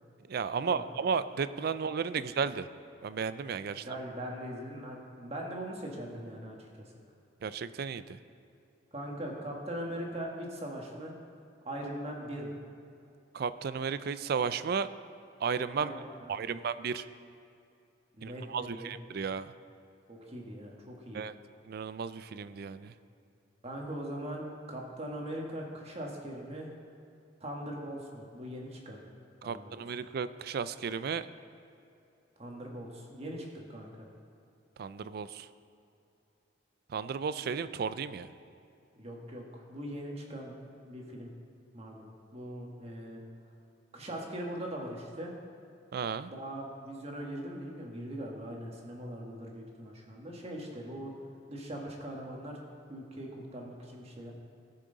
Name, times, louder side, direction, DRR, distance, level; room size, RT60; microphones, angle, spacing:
voice 1, 0.3-2.7 3.0-3.9 7.4-8.2 13.3-14.9 15.4-15.9 16.3-17.1 18.2-19.5 21.1-21.3 21.6-22.9 29.4-31.3 34.8-35.5 36.9-38.3 45.9-46.3, right 6 dB, 55° right, 14 dB, 0.4 m, -34 dB
voice 2, 3.7-6.9 8.9-11.1 11.6-12.6 15.7-16.6 18.2-18.9 20.1-21.3 23.6-26.7 27.4-29.0 29.4-29.8 32.4-34.1 39.0-40.5 40.8-41.3 41.7-43.2 43.9-45.3 46.2-51.1 51.5-52.6 52.9-54.3, right 1 dB, 35° right, -1 dB, 1.6 m, -41 dB
18.5 x 6.4 x 4.0 m, 2.6 s
head